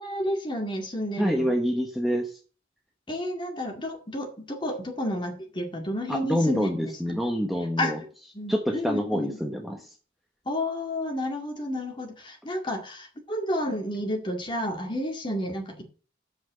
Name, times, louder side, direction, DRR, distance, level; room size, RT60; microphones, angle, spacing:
voice 1, 0.0-1.5 3.1-6.9 7.8-8.0 8.3-9.4 10.5-15.8, left 1 dB, 25° left, 3 dB, 2.0 m, -31 dB
voice 2, 1.2-2.3 6.1-8.0 8.5-9.9, equal, ahead, 2 dB, 1.0 m, -26 dB
7.8 x 6.0 x 7.4 m, 0.38 s
head